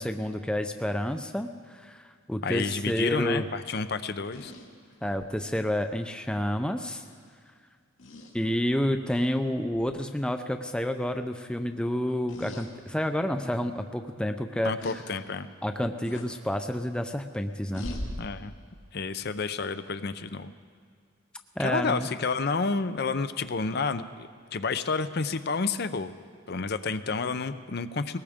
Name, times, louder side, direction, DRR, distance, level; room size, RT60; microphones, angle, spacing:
voice 1, 0.0-3.5 5.0-7.0 8.3-15.0 15.6-17.9 21.6-22.1, equal, 5° left, 7 dB, 0.5 m, -29 dB
voice 2, 2.4-4.5 14.6-15.5 18.2-18.5 18.9-20.5 21.6-26.1 26.5-28.2, left 4 dB, 50° left, 11 dB, 0.6 m, -30 dB
sound 1, 4.2-5.4 7.0-7.2 8.0-8.3 9.1-9.3 9.7-9.9 12.3-12.7 13.3-13.4 14.8-15.0 16.0-16.3 17.7-18.1, left 1 dB, 70° left, 2.3 m, -40 dB
21.5 x 18.5 x 3.6 m, 2.1 s
head